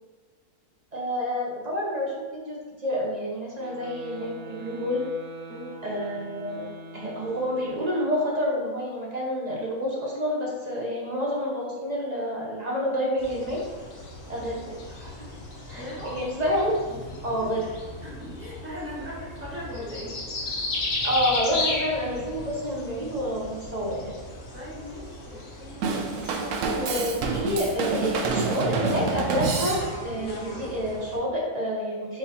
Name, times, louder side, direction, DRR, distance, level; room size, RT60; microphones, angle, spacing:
voice 1, 0.9-5.0 5.8-6.6 6.9-13.6 14.3-14.6 14.9-15.1 15.7-16.9 17.2-17.6 21.0-24.1 26.8-32.2, equal, 40° right, -4 dB, 0.7 m, -28 dB
sound 1, 3.5-8.1, right 1 dB, 85° right, 0.4 m, -44 dB
sound 2, 13.2-31.2, left 2 dB, 45° left, 0.8 m, -36 dB
voice 2, 15.7-16.2 16.9-17.0 17.4-17.5 18.0-20.7 24.5-25.8, left 1 dB, 10° right, -8 dB, 1.1 m, -39 dB
Drum kit / Drum, 25.8-30.2, right 4 dB, 70° right, 0.8 m, -28 dB
4.3 x 4.0 x 2.8 m, 1.4 s
omnidirectional pair, 1.6 m